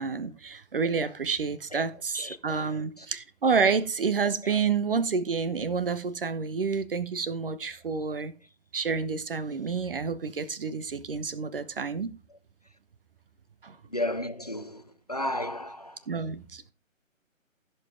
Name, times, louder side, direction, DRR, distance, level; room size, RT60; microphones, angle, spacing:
voice 1, 0.0-8.3 8.7-12.1 13.6-13.8 16.1-16.7, right 5 dB, 45° right, 0.8 m, -29 dB
voice 2, 2.1-2.7 13.9-14.8 15.1-16.0, left 1 dB, 35° left, 0.4 m, -33 dB
15.5 x 5.5 x 3.7 m
figure-of-eight pair, 145°, 39 cm